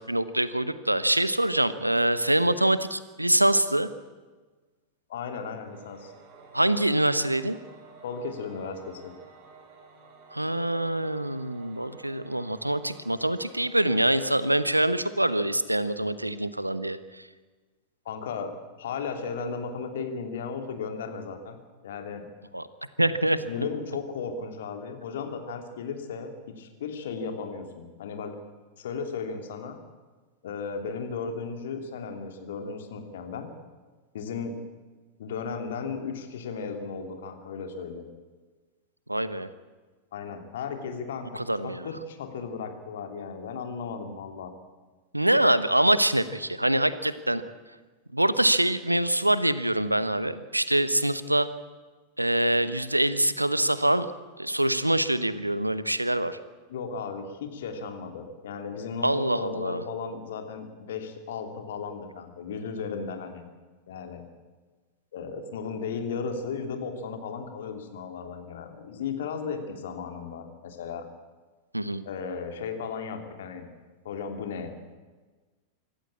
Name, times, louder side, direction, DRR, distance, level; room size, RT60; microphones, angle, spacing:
voice 1, 0.1-3.9 6.5-7.6 10.3-17.0 22.5-22.6 23.0-23.4 39.1-39.5 41.3-41.8 45.1-47.4 48.1-51.5 52.2-54.1 54.4-56.4 59.0-59.8 71.7-72.0, right 1 dB, 85° right, 14 dB, 1.0 m, -24 dB
voice 2, 5.1-6.1 8.0-9.1 18.0-18.5 18.8-21.6 21.8-22.2 23.4-28.4 28.8-29.8 30.4-33.5 34.1-34.6 35.2-38.1 40.1-44.5 56.7-63.4 63.9-64.2 65.1-71.0 72.0-73.7 74.0-74.8, left 5 dB, 60° left, 5 dB, 3.0 m, -35 dB
Singing / Musical instrument, 5.6-15.6, right 4 dB, 40° right, 4.5 m, -52 dB
25.5 x 14.0 x 8.7 m, 1.3 s
figure-of-eight pair, 90°, 0 cm